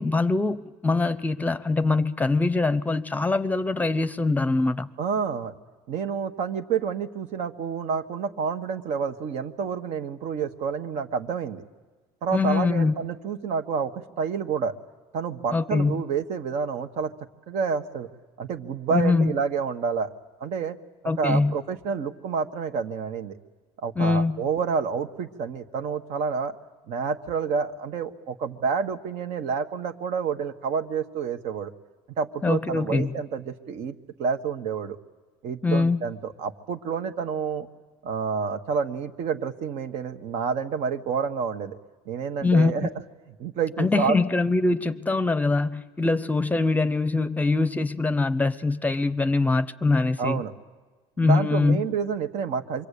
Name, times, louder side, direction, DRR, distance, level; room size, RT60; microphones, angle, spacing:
voice 1, 0.0-4.9 12.3-12.9 15.5-16.0 18.9-19.3 21.0-21.5 24.0-24.4 32.4-33.1 35.6-36.0 42.4-42.7 43.8-50.4 51.2-51.9, left 3 dB, 15° left, 14 dB, 0.7 m, -23 dB
voice 2, 5.0-5.6 5.9-11.6 12.2-14.7 15.1-17.1 17.5-18.1 18.4-20.1 20.4-20.8 21.2-23.4 23.8-26.5 26.9-31.7 32.2-35.0 35.4-37.7 38.0-41.8 42.1-42.9 43.4-44.2 50.2-50.5 51.2-52.9, right 6 dB, 65° right, 8 dB, 1.5 m, -29 dB
26.5 x 23.5 x 8.5 m, 1.3 s
cardioid pair, 110°, 12 cm